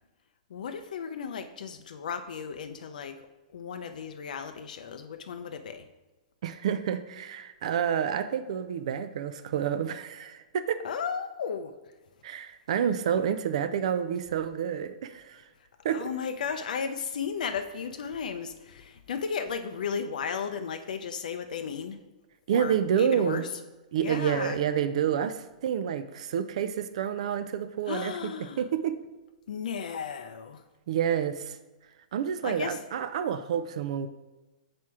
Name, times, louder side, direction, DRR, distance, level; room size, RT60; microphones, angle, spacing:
voice 1, 0.5-3.2 3.5-5.9 10.8-11.8 15.9-22.0 22.5-23.5 24.0-24.6 27.9-28.6 29.5-30.6 32.4-32.8, left 6 dB, 80° left, 8 dB, 0.5 m, -35 dB
voice 2, 6.4-10.8 12.2-15.4 15.8-16.1 22.5-23.4 23.9-28.1 28.6-29.0 30.9-31.6 32.1-34.1, right 8 dB, 50° right, 11 dB, 0.3 m, -29 dB
6.1 x 4.3 x 4.7 m, 1.1 s
hypercardioid pair, 175°, 4 cm